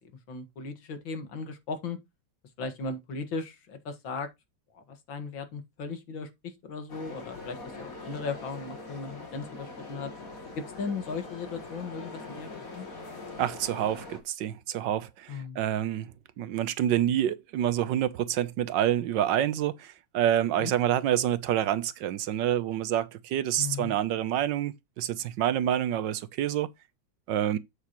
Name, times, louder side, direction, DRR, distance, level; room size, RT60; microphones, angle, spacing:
voice 1, 0.3-2.0 2.6-4.3 4.7-10.1 10.6-12.9 15.3-15.6 20.6-20.7 23.6-23.9, left 4 dB, 85° left, 2.5 m, -37 dB
sound 1, 6.9-14.2, left 3 dB, 45° left, 2.9 m, -43 dB
voice 2, 13.4-16.1 16.4-26.7 27.3-27.6, right 11 dB, 75° right, 1.4 m, -27 dB
8.3 x 8.3 x 3.0 m
omnidirectional pair, 2.1 m